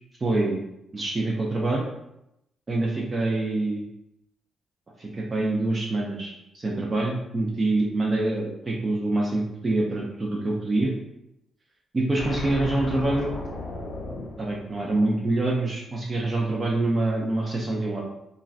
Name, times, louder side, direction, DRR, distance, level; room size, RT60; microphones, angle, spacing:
voice 1, 0.2-0.6 0.9-1.9 2.7-3.8 5.0-10.9 11.9-13.4 14.4-18.0, right 2 dB, 25° right, -2 dB, 0.4 m, -25 dB
sound 1, 12.2-15.5, left 2 dB, 75° left, 0.6 m, -36 dB
3.4 x 2.1 x 2.4 m, 0.84 s
wide cardioid pair, 165°, 0 cm